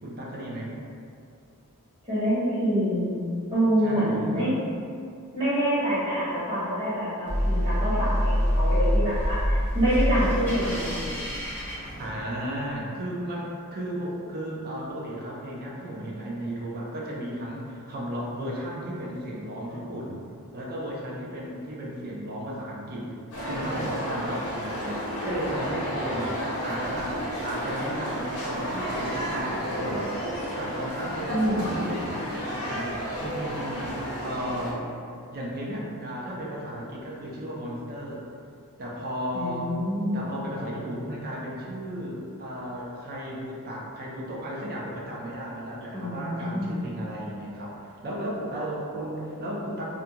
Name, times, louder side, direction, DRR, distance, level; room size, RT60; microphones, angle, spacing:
voice 1, 0.0-0.7 3.8-4.5 12.0-20.2 20.5-23.1 23.4-30.1 30.6-34.8 35.3-38.2 38.8-39.7 40.1-49.8, equal, 45° right, -4 dB, 0.4 m, -34 dB
voice 2, 2.1-3.1 3.5-4.6 5.3-11.3 31.3-31.8 39.3-40.2 45.9-46.8, equal, 25° right, -13 dB, 1.0 m, -26 dB
sound 1, 7.3-12.6, equal, 10° left, 0.6 m, -26 dB
sound 2, 23.3-34.7, equal, 85° left, 0.7 m, -31 dB
2.5 x 2.2 x 2.8 m, 2.4 s
head